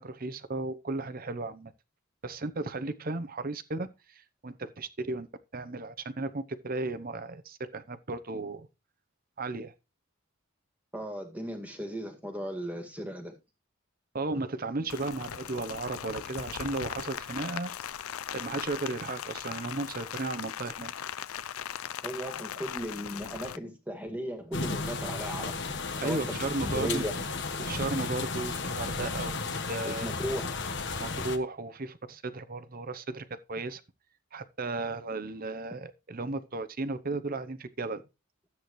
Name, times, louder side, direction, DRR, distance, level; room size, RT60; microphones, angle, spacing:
voice 1, 0.0-1.7 2.2-5.3 5.5-8.7 9.4-9.7 14.1-17.7 18.3-20.9 26.0-27.1 27.6-30.1 31.0-33.8 34.3-38.0, right 3 dB, 40° right, 0.8 m, -35 dB
voice 2, 10.9-13.4 22.0-25.8 26.0-27.2 29.8-30.5, equal, 5° right, 2.0 m, -36 dB
Rain, 14.9-23.6, left 9 dB, 75° left, 0.5 m, -39 dB
sound 1, 24.5-31.4, left 4 dB, 55° left, 1.3 m, -34 dB
13.0 x 8.4 x 3.1 m
head